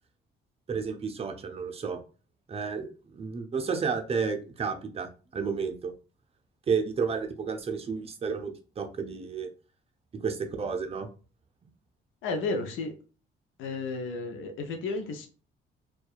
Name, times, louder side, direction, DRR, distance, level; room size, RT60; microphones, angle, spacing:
voice 1, 0.7-2.0 2.5-5.9 6.7-9.5 10.1-11.1, right 5 dB, 30° right, 5 dB, 0.5 m, -31 dB
voice 2, 12.2-12.9 13.6-15.3, left 3 dB, 80° left, 5 dB, 0.5 m, -32 dB
2.7 x 2.2 x 2.3 m, 0.36 s
cardioid pair, 90°, 20 cm